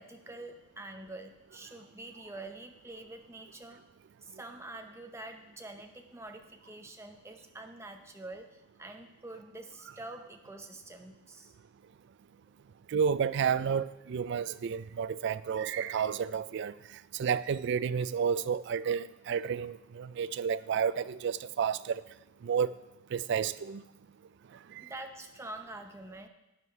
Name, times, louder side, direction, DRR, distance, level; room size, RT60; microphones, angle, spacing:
voice 1, 0.0-3.8 4.2-11.5 12.5-12.6 24.8-26.3, right 2 dB, 15° right, 0.8 m, -46 dB
voice 2, 12.9-16.7 17.1-22.0 22.4-22.7 23.1-23.8 24.8-24.9, right 7 dB, 60° right, 0.3 m, -31 dB
12.0 x 9.1 x 3.3 m
head